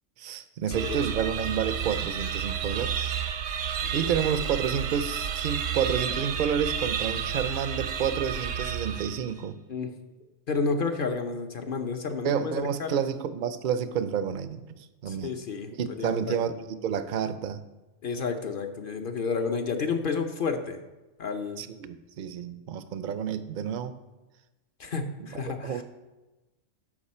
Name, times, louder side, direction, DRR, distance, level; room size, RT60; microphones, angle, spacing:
voice 1, 0.2-3.1 3.9-9.5 12.2-15.3 15.8-17.6 21.6-23.9 25.3-25.8, right 8 dB, 55° right, 12 dB, 0.5 m, -30 dB
voice 2, 0.7-1.3 3.8-4.1 9.7-9.9 10.5-13.0 15.1-16.4 18.0-20.8 21.2-21.6 24.8-25.8, left 4 dB, 50° left, 6 dB, 0.8 m, -31 dB
sound 1, 0.7-9.4, right 8 dB, 80° right, 1.0 m, -31 dB
12.5 x 5.1 x 4.2 m, 1.1 s
omnidirectional pair, 1.3 m